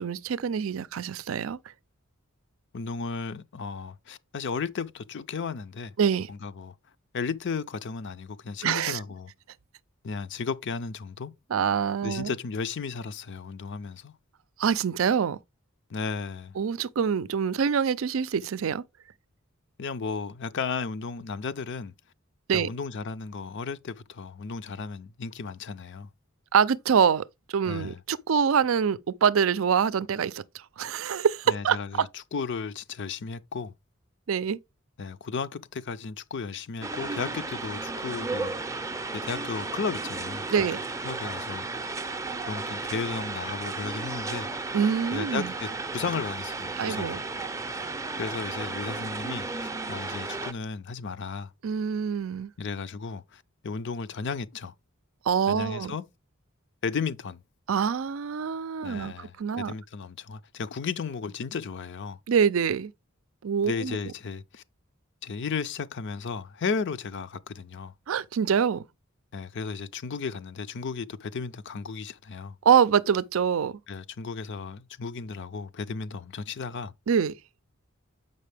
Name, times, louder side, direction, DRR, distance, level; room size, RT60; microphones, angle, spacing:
voice 1, 0.0-1.6 6.0-6.3 8.6-9.0 11.5-12.3 14.6-15.4 16.6-18.8 22.5-22.7 26.5-27.2 27.5-32.1 34.3-34.6 40.5-40.8 44.7-45.5 46.8-47.2 51.6-52.5 55.3-55.9 57.7-59.7 62.3-62.9 63.4-64.0 68.1-68.8 72.6-73.8 77.1-77.3, right 7 dB, 70° right, 0.4 m, -25 dB
voice 2, 2.7-5.9 6.3-6.7 7.1-9.3 10.0-11.3 12.0-14.1 15.9-16.6 19.8-21.9 22.5-26.1 27.6-28.0 31.5-33.7 35.0-38.6 39.1-40.5 41.0-41.9 42.5-44.7 45.1-47.2 48.2-51.5 52.6-54.7 55.5-56.0 56.8-57.4 58.8-62.2 63.6-64.6 65.2-67.9 69.3-72.6 73.9-76.9, left 5 dB, 60° left, 0.5 m, -34 dB
sound 1, 36.8-50.5, right 3 dB, 15° right, 0.5 m, -34 dB
7.5 x 5.4 x 3.3 m
head